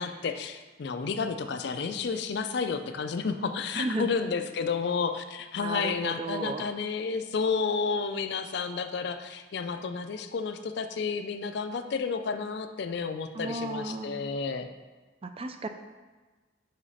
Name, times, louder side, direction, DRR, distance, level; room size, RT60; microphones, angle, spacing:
voice 1, 0.0-14.7, left 5 dB, 55° left, 8 dB, 0.4 m, -31 dB
voice 2, 3.8-4.1 5.6-6.7 13.3-14.2 15.2-15.7, right 2 dB, 30° right, 7 dB, 0.3 m, -34 dB
5.7 x 5.1 x 4.2 m, 1.3 s
head